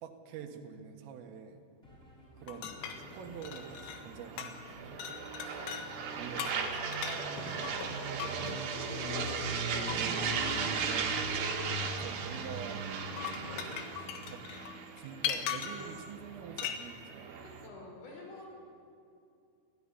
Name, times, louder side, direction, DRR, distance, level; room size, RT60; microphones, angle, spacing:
voice 1, 0.0-1.6 2.4-5.0 5.4-5.6 6.2-7.5 11.8-13.0 13.9-14.4 15.0-17.5, right 7 dB, 75° right, 5 dB, 3.9 m, -47 dB
sound 1, 1.8-13.3, right 1 dB, 5° left, 4.5 m, -57 dB
sound 2, 2.5-4.1 4.4-4.7 5.0-5.9 6.4-8.6 9.9-10.0 13.0-15.9 16.6-16.8, left 9 dB, 85° left, 4.3 m, -39 dB
sound 3, 2.8-17.7, right 5 dB, 60° right, 3.7 m, -37 dB
voice 2, 8.0-11.1 17.3-18.5, left 3 dB, 40° left, -1 dB, 6.5 m, -48 dB
29.0 x 13.5 x 9.9 m, 2.5 s
omnidirectional pair, 6.0 m